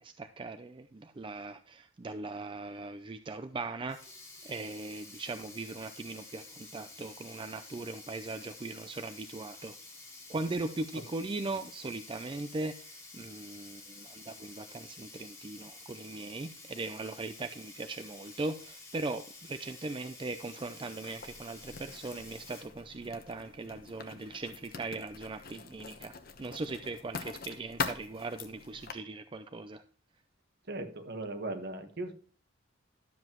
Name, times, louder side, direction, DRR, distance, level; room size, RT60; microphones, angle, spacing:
voice 1, 0.0-4.0 4.4-9.7 10.3-26.1 26.4-29.8, right 3 dB, 25° right, 9 dB, 0.4 m, -39 dB
Sink (filling or washing), 3.9-22.6, left 3 dB, 15° left, 2.9 m, -50 dB
Writing, 21.0-28.9, left 5 dB, 50° left, 1.0 m, -43 dB
voice 2, 30.7-32.1, right 2 dB, 55° right, 6 dB, 1.3 m, -38 dB
11.5 x 7.7 x 3.0 m, 0.42 s
head